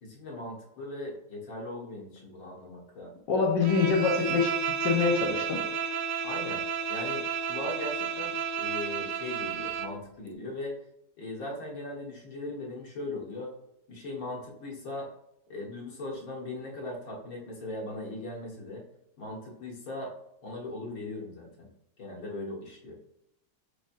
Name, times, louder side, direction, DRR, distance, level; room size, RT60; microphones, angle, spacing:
voice 1, 0.0-3.1 6.2-6.6 6.9-10.8 11.2-13.5 13.9-15.1 15.5-18.8 19.2-20.1 20.4-21.7 22.0-22.9, left 2 dB, 55° left, -3 dB, 1.8 m, -39 dB
voice 2, 3.3-5.6, left 5 dB, 80° left, -1 dB, 1.5 m, -25 dB
Bowed string instrument, 3.6-10.0, right 5 dB, 90° right, 1.2 m, -32 dB
4.7 x 4.2 x 2.5 m, 0.80 s
omnidirectional pair, 1.8 m